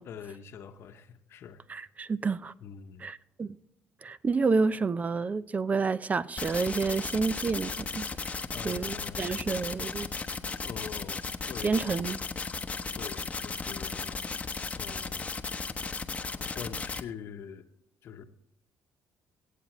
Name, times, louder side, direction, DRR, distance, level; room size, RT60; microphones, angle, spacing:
voice 1, 0.0-1.6 2.6-3.1 8.5-9.5 10.6-11.2 11.5-12.1 13.0-14.3 14.7-15.3 16.3-17.6 18.0-18.2, left 7 dB, 60° left, 1.0 m, -44 dB
voice 2, 1.7-2.5 3.0-3.6 4.0-8.4 8.6-10.1 11.6-12.2, right 4 dB, 30° right, 0.5 m, -29 dB
sound 1, 6.4-17.0, left 4 dB, 25° left, 0.9 m, -35 dB
23.5 x 8.3 x 3.1 m
supercardioid pair, 75°, 5 cm